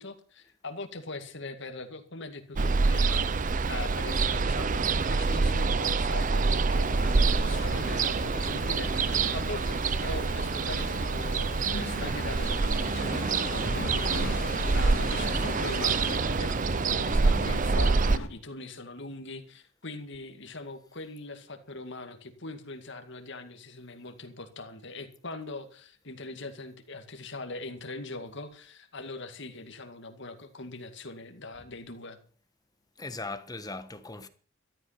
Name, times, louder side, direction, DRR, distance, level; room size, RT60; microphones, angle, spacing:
voice 1, 0.0-14.5 14.7-32.2, left 3 dB, 60° left, 2.2 m, -41 dB
Ocean, 2.6-18.2, right 4 dB, 40° right, 0.6 m, -26 dB
sound 1, 6.7-16.2, left 1 dB, 40° left, 2.9 m, -38 dB
sound 2, 7.4-18.3, left 2 dB, 90° left, 2.2 m, -42 dB
voice 2, 33.0-34.3, left 3 dB, 20° left, 1.2 m, -38 dB
13.5 x 12.0 x 5.9 m
head